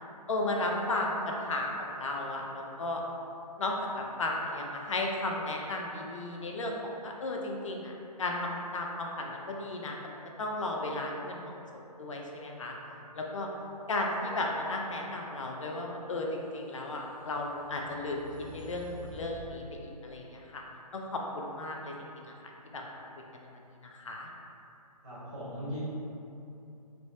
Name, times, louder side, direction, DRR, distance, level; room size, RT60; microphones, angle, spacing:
voice 1, 0.3-1.7 2.0-3.0 3.6-7.9 8.2-11.5 12.0-12.7 13.1-13.5 13.9-18.2 18.5-20.6 20.9-22.1 22.7-22.8 23.8-24.3, left 2 dB, 50° left, 0 dB, 0.5 m, -34 dB
sound 1, 16.6-19.5, left 1 dB, 15° right, 0.4 m, -49 dB
voice 2, 25.0-25.8, equal, 45° right, -11 dB, 1.4 m, -39 dB
3.3 x 2.9 x 2.6 m, 2.8 s
figure-of-eight pair, 140°, 20 cm